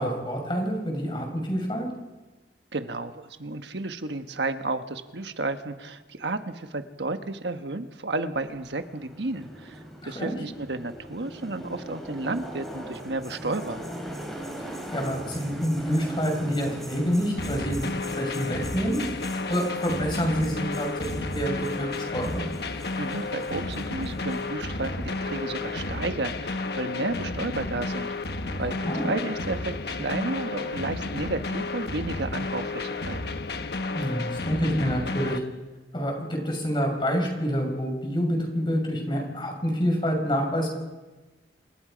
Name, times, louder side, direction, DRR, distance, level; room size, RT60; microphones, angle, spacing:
voice 1, 0.0-1.9 10.0-10.3 14.6-19.0 19.5-22.4 28.6-29.1 33.9-35.4 35.9-40.7, equal, 30° left, 2 dB, 5.8 m, -27 dB
voice 2, 2.7-13.8 23.0-28.1 28.6-33.2, right 2 dB, 75° right, 8 dB, 1.3 m, -32 dB
sound 1, 8.3-26.0, equal, ahead, 5.1 m, -41 dB
sound 2, 17.4-35.4, left 3 dB, 65° left, 1.2 m, -32 dB
27.5 x 23.0 x 5.2 m, 1.2 s
head